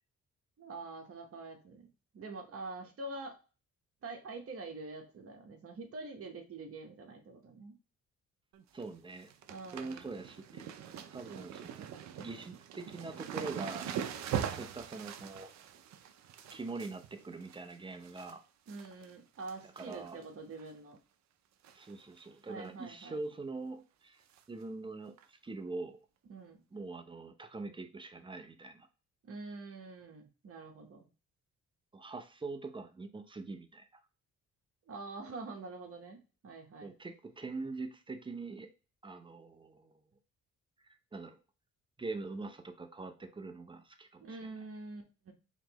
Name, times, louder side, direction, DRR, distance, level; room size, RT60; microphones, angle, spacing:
voice 1, 0.6-1.9 2.1-3.3 4.0-7.8 9.5-10.2 14.3-14.7 18.7-21.0 22.5-23.2 26.3-26.6 29.2-31.1 34.9-36.9 44.2-45.3, right 3 dB, 50° right, 3 dB, 1.0 m, -45 dB
sound 1, 8.5-8.8 9.1-18.3 18.7-19.1 19.4-20.2 20.6-20.7 21.6-21.9 22.2-22.3 22.6-22.7 24.3-24.4 25.2-25.3, right 9 dB, 65° right, 0.5 m, -42 dB
voice 2, 8.7-9.3 9.7-10.7 11.1-11.9 12.2-13.9 14.5-15.5 16.5-18.4 19.8-20.2 21.7-26.0 26.7-28.9 31.9-33.9 36.8-38.7 39.0-39.9 40.8-41.4 42.0-44.5, right 3 dB, 15° right, 7 dB, 0.5 m, -43 dB
4.2 x 3.0 x 2.9 m, 0.34 s
cardioid pair, 90°, 30 cm